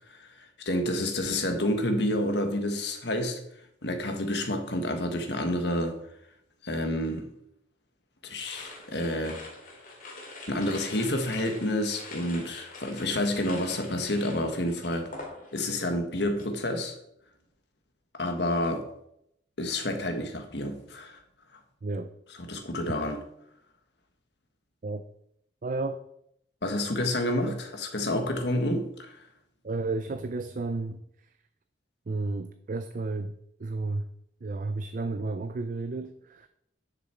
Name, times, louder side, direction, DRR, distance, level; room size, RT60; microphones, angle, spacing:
voice 1, 0.1-3.4 3.8-6.0 6.6-7.3 8.2-9.4 10.5-15.1 15.5-17.0 18.1-18.9 19.6-21.2 22.4-23.2 26.6-29.2, left 1 dB, 65° left, 1.5 m, -29 dB
sound 1, 8.4-15.8 16.1-16.6, left 2 dB, 50° left, 2.5 m, -44 dB
voice 2, 21.8-22.1 24.8-25.0 25.6-26.0 27.5-27.6 29.6-31.0 32.1-33.3 33.6-34.1 34.4-36.5, right 3 dB, 45° right, 0.4 m, -32 dB
10.0 x 7.0 x 4.5 m
head